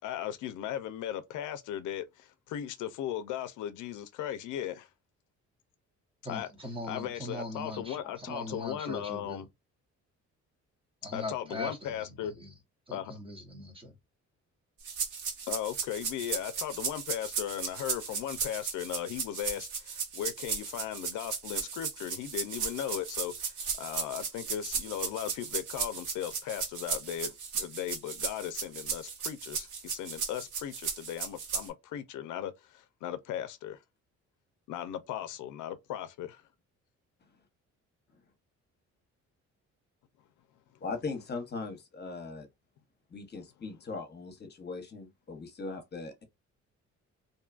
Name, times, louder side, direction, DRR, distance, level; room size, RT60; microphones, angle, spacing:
voice 1, 0.0-4.9 6.3-6.5 6.9-9.5 11.1-12.3 12.9-13.1 15.5-33.8 34.7-36.4, left 11 dB, 85° left, 0.5 m, -37 dB
voice 2, 6.2-9.5 11.0-12.5 12.9-14.0, left 1 dB, 20° right, 0.9 m, -41 dB
sound 1, 14.8-31.7, right 6 dB, 80° right, 1.2 m, -35 dB
voice 3, 40.8-42.5 43.1-46.2, left 4 dB, 35° left, 0.9 m, -39 dB
2.6 x 2.3 x 2.4 m
cardioid pair, 90°, 30 cm